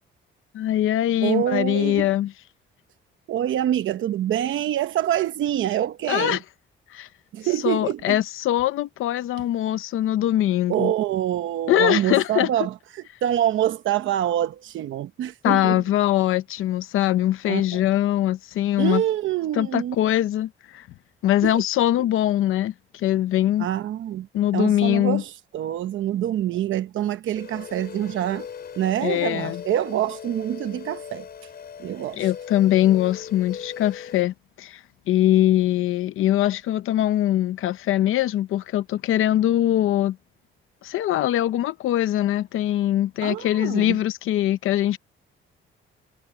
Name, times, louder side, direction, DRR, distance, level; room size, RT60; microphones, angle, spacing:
voice 1, 0.5-2.3 6.1-6.4 6.9-7.1 7.6-10.9 11.7-12.5 15.4-19.0 19.5-20.9 21.2-23.7 24.3-25.2 29.0-29.6 32.2-40.2 40.8-45.0, left 13 dB, 85° left, 0.7 m, -22 dB
voice 2, 1.2-2.1 3.3-6.4 7.3-8.2 10.7-15.8 17.4-17.8 18.8-20.0 21.4-21.6 23.6-24.3 24.5-28.5 28.8-31.3 31.8-32.3 43.2-44.0, right 11 dB, 75° right, 0.9 m, -26 dB
sound 1, 27.4-34.2, left 7 dB, 50° left, 5.4 m, -39 dB
cardioid pair, 135°, 21 cm